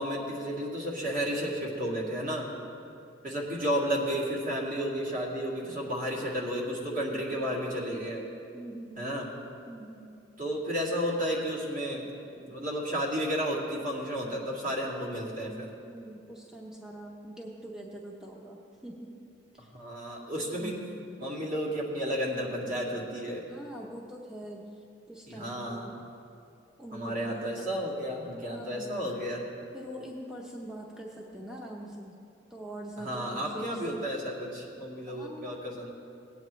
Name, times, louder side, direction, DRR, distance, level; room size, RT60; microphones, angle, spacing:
voice 1, 0.0-2.5 3.2-8.2 9.0-9.3 10.4-12.0 12.3-15.7 19.7-20.7 21.2-23.4 25.3-25.9 26.9-29.4 33.0-35.9, equal, 50° right, -4 dB, 2.2 m, -32 dB
voice 2, 7.3-7.6 8.5-9.1 9.7-10.2 15.9-19.1 19.5-19.7 20.5-20.9 23.5-25.9 26.8-27.7 28.4-29.1 29.7-32.2 32.5-33.8 35.1-35.6, right 1 dB, 5° right, -2 dB, 0.7 m, -44 dB
18.0 x 8.7 x 3.1 m, 2.5 s
head